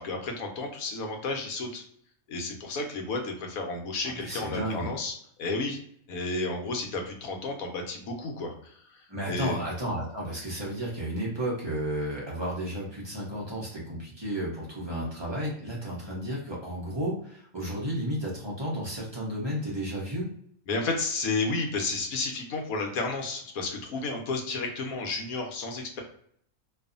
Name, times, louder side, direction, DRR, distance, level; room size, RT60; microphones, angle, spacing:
voice 1, 0.0-1.8 2.3-5.8 6.1-8.8 9.3-9.6 20.7-26.0, left 3 dB, 75° left, 3 dB, 1.1 m, -32 dB
voice 2, 4.0-4.9 9.1-20.3, equal, 30° right, -4 dB, 0.5 m, -32 dB
2.6 x 2.4 x 2.4 m, 0.65 s
omnidirectional pair, 1.6 m